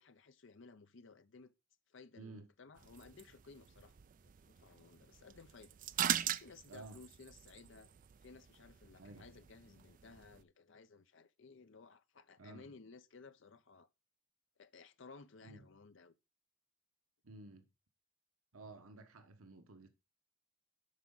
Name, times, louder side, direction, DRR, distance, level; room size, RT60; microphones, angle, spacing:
voice 1, 0.0-1.5 1.9-4.0 4.2-5.7 6.2-7.9 8.2-13.9 14.6-16.1, left 4 dB, 60° left, 0.6 m, -58 dB
voice 2, 2.2-2.5 6.7-7.0 9.0-9.3 12.4-12.7 15.4-15.7 17.2-17.7 18.5-19.9, right 2 dB, 85° right, 1.1 m, -53 dB
sound 1, 2.8-10.4, right 10 dB, 40° right, 0.3 m, -43 dB
12.0 x 4.9 x 3.9 m
head